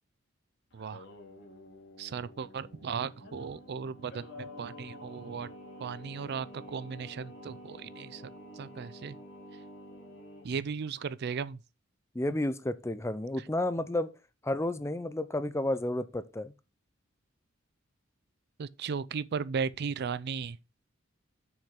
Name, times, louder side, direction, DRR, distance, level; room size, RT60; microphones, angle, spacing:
Singing, 0.7-10.5, left 1 dB, 60° left, 2.5 m, -49 dB
voice 1, 0.7-1.0 2.0-5.5 5.8-8.3 8.6-9.2 10.4-11.6 18.6-20.6, right 6 dB, 55° right, 0.4 m, -36 dB
voice 2, 12.1-14.1 14.4-16.5, left 1 dB, 15° left, 0.5 m, -31 dB
7.1 x 6.4 x 3.7 m
head